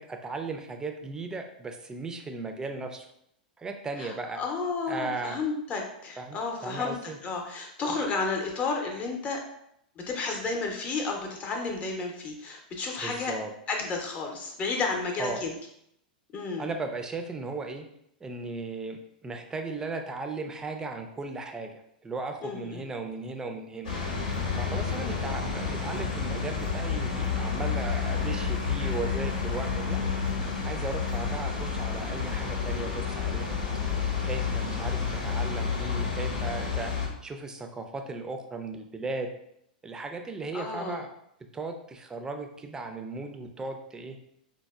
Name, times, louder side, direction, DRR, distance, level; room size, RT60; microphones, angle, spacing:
voice 1, 0.0-3.1 3.6-4.4 4.9-5.4 6.2-7.2 13.0-13.5 15.2-15.4 16.6-17.8 18.2-23.9 24.6-30.0 30.6-33.5 34.2-36.9 37.2-39.3 39.8-41.1 41.5-44.2, right 3 dB, 15° right, 5 dB, 0.4 m, -36 dB
voice 2, 4.0-9.4 10.0-13.3 13.7-15.5 16.3-16.7 22.4-22.8 40.5-41.0, left 4 dB, 30° left, 2 dB, 0.7 m, -32 dB
sound 1, 23.8-37.1, left 5 dB, 70° left, 0.9 m, -30 dB
4.2 x 2.1 x 2.3 m, 0.75 s
hypercardioid pair, 100°, 5 cm